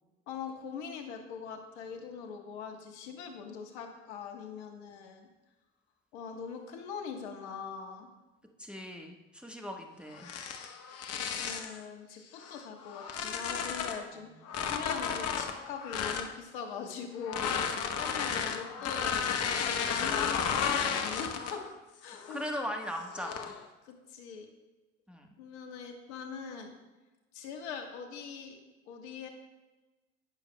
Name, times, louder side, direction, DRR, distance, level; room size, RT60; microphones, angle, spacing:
voice 1, 0.3-5.3 6.1-8.1 11.2-14.3 14.6-19.3 19.6-21.6 22.0-22.6 23.9-24.5 25.4-26.7 27.3-28.6 28.9-29.3, left 6 dB, 65° left, 4 dB, 1.3 m, -42 dB
voice 2, 8.6-10.3 14.1-14.6 17.8-18.0 22.3-23.5 25.1-25.3, equal, 5° right, 1 dB, 1.2 m, -40 dB
sound 1, 10.2-11.8 12.4-14.0 14.5-16.3 17.2-21.7 22.1-22.4 23.1-23.6, left 7 dB, 40° left, 0.9 m, -33 dB
18.0 x 6.7 x 2.2 m, 1.1 s
hypercardioid pair, 70°, 37 cm